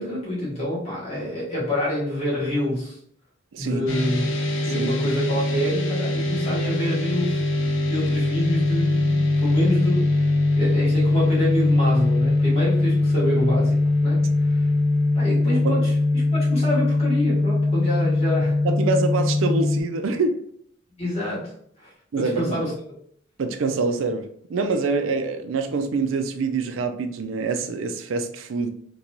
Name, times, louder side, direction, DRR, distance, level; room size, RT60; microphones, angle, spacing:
voice 1, 0.0-3.0 3.6-4.3 4.6-14.7 15.1-18.6 21.0-22.7, left 1 dB, 30° left, 1.5 m, -27 dB
voice 2, 3.5-3.8 4.6-4.9 15.5-15.8 18.6-20.4 22.1-22.6 23.4-28.7, right 3 dB, 85° right, 0.4 m, -25 dB
sound 1, 3.9-19.8, left 2 dB, 80° left, 0.6 m, -21 dB
3.9 x 2.2 x 2.9 m
head